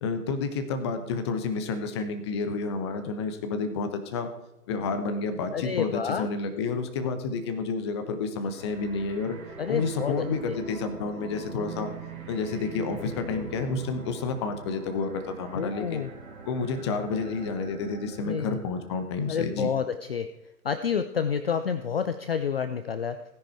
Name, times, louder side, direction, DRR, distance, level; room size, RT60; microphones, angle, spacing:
voice 1, 0.0-4.3 4.7-9.4 9.7-11.9 12.3-16.0 16.5-19.7, left 4 dB, 15° left, 8 dB, 1.0 m, -30 dB
voice 2, 5.5-6.3 9.6-10.6 15.5-16.1 18.2-18.6 19.3-20.3 20.6-23.2, left 7 dB, 40° left, 10 dB, 0.7 m, -29 dB
sound 1, 8.5-19.0, right 5 dB, 60° right, 3.2 m, -42 dB
16.5 x 10.5 x 4.6 m, 0.91 s
figure-of-eight pair, 145°, 46 cm